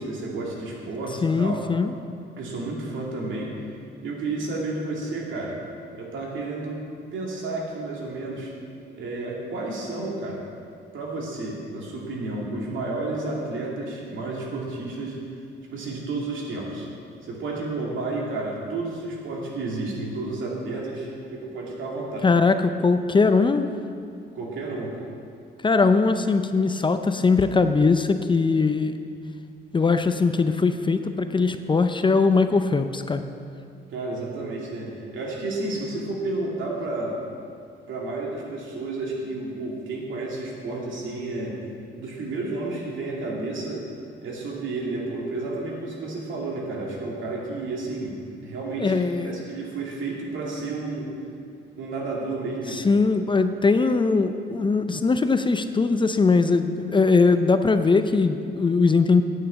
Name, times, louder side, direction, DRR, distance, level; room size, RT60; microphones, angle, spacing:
voice 1, 0.0-1.6 2.4-3.5 4.0-5.6 5.9-6.8 7.1-8.5 8.9-10.4 10.9-15.2 15.7-16.9 17.2-22.3 24.3-25.1 33.9-37.2 37.9-41.6 41.9-43.8 44.2-48.1 48.4-51.1 51.7-52.9, right 2 dB, 75° right, -3 dB, 2.7 m, -31 dB
voice 2, 1.2-1.9 22.2-23.7 25.6-29.0 29.7-33.2 48.8-49.3 52.7-59.2, left 4 dB, 25° left, 9 dB, 0.5 m, -21 dB
9.2 x 6.6 x 8.7 m, 2.4 s
cardioid pair, 90°, 20 cm